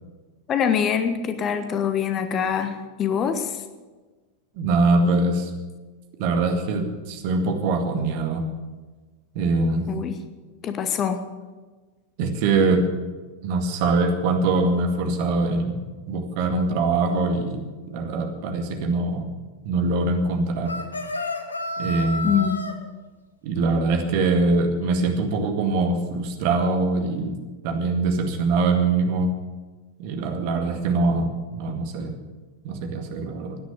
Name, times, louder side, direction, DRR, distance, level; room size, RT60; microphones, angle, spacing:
voice 1, 0.5-3.6 9.9-10.2 10.6-11.2 22.2-22.7, left 8 dB, 30° left, 9 dB, 1.2 m, -24 dB
voice 2, 4.6-5.5 6.2-8.5 9.3-9.9 12.2-12.9 13.4-15.8 16.1-19.3 19.6-20.8 21.8-22.3 23.4-27.4 27.6-29.3 30.0-32.1 32.6-33.6, right 3 dB, 45° right, 5 dB, 2.1 m, -23 dB
sound 1, 20.6-22.7, left 2 dB, 80° left, 1.3 m, -30 dB
15.5 x 10.5 x 7.0 m, 1.3 s
figure-of-eight pair, 90°, 0 cm